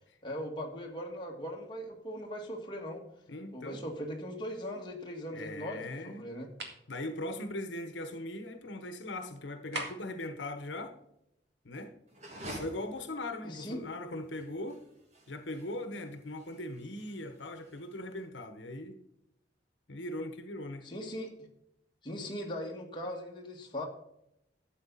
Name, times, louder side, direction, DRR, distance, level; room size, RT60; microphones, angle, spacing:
voice 1, 0.2-3.0 3.5-6.5 13.4-13.8 20.8-21.5 22.0-23.8, equal, 25° left, 0 dB, 1.8 m, -39 dB
voice 2, 3.3-3.8 5.3-6.3 6.9-10.9 11.6-12.0 12.4-14.8 15.3-19.0 19.9-20.8, left 1 dB, 85° left, 8 dB, 1.1 m, -40 dB
sound 1, 6.6-6.9 9.7-10.2, right 3 dB, 70° right, 2.1 m, -39 dB
sound 2, 12.1-18.2, right 1 dB, 40° right, 2.2 m, -49 dB
12.0 x 8.2 x 4.0 m, 0.79 s
head